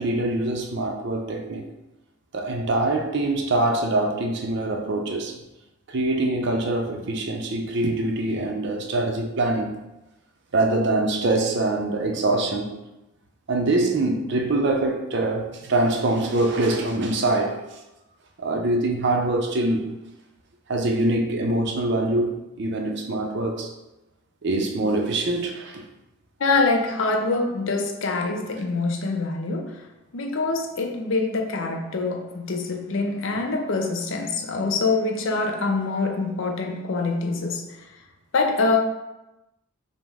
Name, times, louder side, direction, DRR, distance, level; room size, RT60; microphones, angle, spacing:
voice 1, 0.0-1.7 2.3-5.3 5.9-9.8 10.5-12.7 13.5-17.6 18.4-19.9 20.7-23.7 24.4-25.8, right 2 dB, 50° right, 3 dB, 0.5 m, -24 dB
voice 2, 26.4-29.9 30.1-38.0 38.3-38.8, left 3 dB, 60° left, 4 dB, 0.5 m, -25 dB
5.1 x 2.1 x 3.4 m, 0.96 s
head